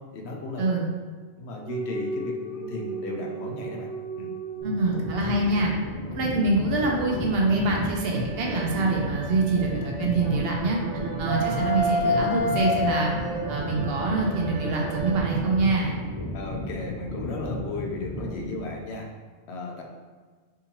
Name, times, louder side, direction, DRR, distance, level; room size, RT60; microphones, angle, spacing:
voice 1, 0.1-0.7 1.4-3.9 4.2-4.3 16.3-19.1 19.5-19.8, left 3 dB, 70° left, 0 dB, 0.8 m, -35 dB
sound 1, 1.7-5.7 6.8-10.3 10.8-15.1, left 1 dB, 85° right, 1.1 m, -32 dB
sound 2, 4.6-18.8, equal, 55° left, 0.3 m, -34 dB
voice 2, 4.6-5.7 6.1-10.8 11.2-13.1 13.5-15.9, right 3 dB, 65° right, -1 dB, 0.8 m, -25 dB
sound 3, 10.1-15.9, right 5 dB, 30° right, 0.5 m, -35 dB
3.6 x 2.7 x 2.8 m, 1.5 s
omnidirectional pair, 1.2 m